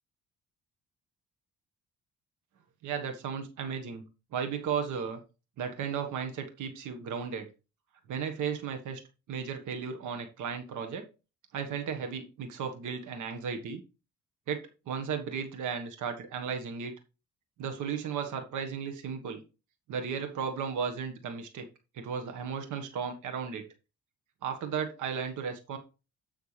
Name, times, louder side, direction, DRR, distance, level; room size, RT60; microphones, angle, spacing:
voice 1, 2.8-4.0 4.3-5.2 5.6-7.5 8.1-9.0 9.3-11.0 11.5-13.8 14.5-16.9 17.6-19.4 19.9-21.7 21.9-23.6 24.4-25.8, right 6 dB, 80° right, 6 dB, 1.5 m, -35 dB
13.0 x 5.8 x 3.3 m, 0.31 s
cardioid pair, 90°, 30 cm